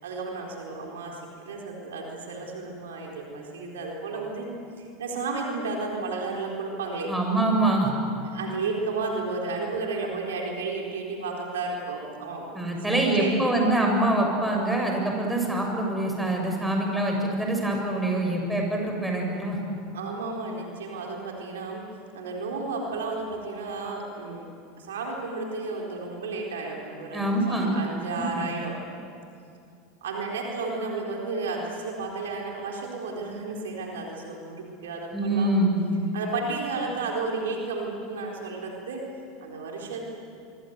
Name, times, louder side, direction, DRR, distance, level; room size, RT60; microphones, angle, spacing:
voice 1, 0.0-4.5 4.8-7.1 8.3-12.5 12.9-13.5 19.9-21.8 22.1-24.5 24.8-28.8 30.0-35.5 36.1-39.0 39.4-40.0, right 3 dB, 70° right, -1 dB, 4.1 m, -32 dB
voice 2, 7.1-7.9 12.5-19.6 27.1-27.7 28.3-28.4 35.1-35.8, right 1 dB, 5° right, 0 dB, 7.3 m, -25 dB
25.5 x 23.5 x 8.0 m, 2.4 s
figure-of-eight pair, 80°, 0 cm